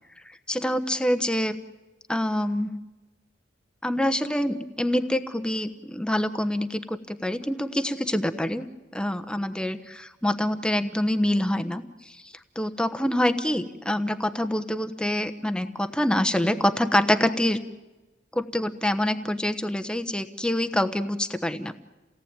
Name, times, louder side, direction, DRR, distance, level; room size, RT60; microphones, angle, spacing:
voice 1, 0.5-1.6 2.1-2.8 3.8-8.7 8.9-11.8 12.5-17.6 18.3-21.8, left 1 dB, 5° left, 8 dB, 1.1 m, -26 dB
29.0 x 18.0 x 9.0 m, 1.1 s
head